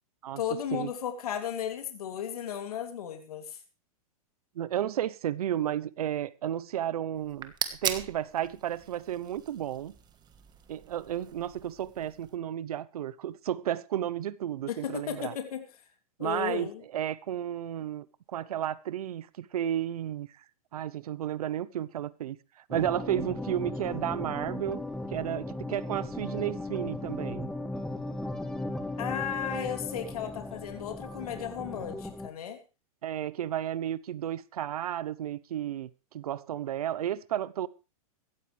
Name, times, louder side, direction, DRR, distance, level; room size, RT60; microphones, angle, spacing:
voice 1, 0.4-3.6 14.7-15.6 16.2-16.8 29.0-32.6, left 9 dB, 80° left, 2.8 m, -35 dB
voice 2, 4.5-7.5 7.8-9.9 10.7-15.3 16.2-20.3 20.7-22.4 22.7-24.8 25.1-27.5 33.0-37.7, right 11 dB, 80° right, 0.9 m, -32 dB
sound 1, 7.2-12.4, right 8 dB, 20° right, 1.5 m, -39 dB
sound 2, 22.7-32.3, left 2 dB, 5° left, 1.2 m, -37 dB
16.5 x 14.0 x 3.4 m
hypercardioid pair, 135°, 19 cm